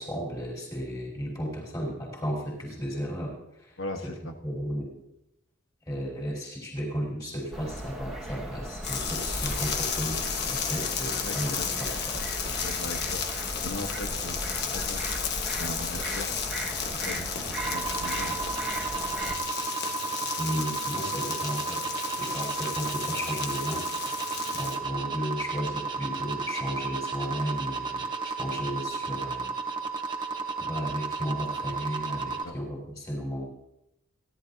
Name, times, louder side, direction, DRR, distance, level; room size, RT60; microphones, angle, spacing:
voice 1, 0.0-4.1 4.4-4.9 5.9-12.2 20.4-21.9 22.2-23.9 24.5-29.5 30.6-33.4, equal, 20° left, -3 dB, 5.0 m, -34 dB
voice 2, 3.8-4.3 11.2-11.8 12.5-13.2 13.6-15.0 15.6-16.3 16.7-18.3 19.2-19.4 32.4-32.5, left 1 dB, 75° left, 4 dB, 1.4 m, -39 dB
sound 1, 7.5-19.3, right 1 dB, ahead, 1.8 m, -37 dB
sound 2, 8.8-24.8, left 6 dB, 55° left, 1.4 m, -33 dB
sound 3, 17.6-32.4, right 4 dB, 20° right, 1.4 m, -33 dB
29.5 x 11.5 x 2.9 m, 0.82 s
head